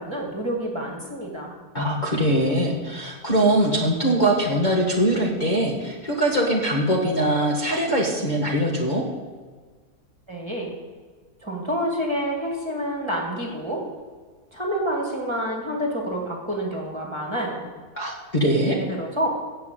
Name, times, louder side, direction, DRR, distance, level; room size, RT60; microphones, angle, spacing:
voice 1, 0.0-1.5 10.3-10.7 11.4-13.8 14.5-17.7 18.6-19.3, equal, 15° right, -1 dB, 2.2 m, -28 dB
voice 2, 1.7-9.0 17.9-18.8, right 1 dB, 30° left, -4 dB, 1.7 m, -22 dB
14.5 x 5.8 x 8.7 m, 1.5 s
omnidirectional pair, 1.7 m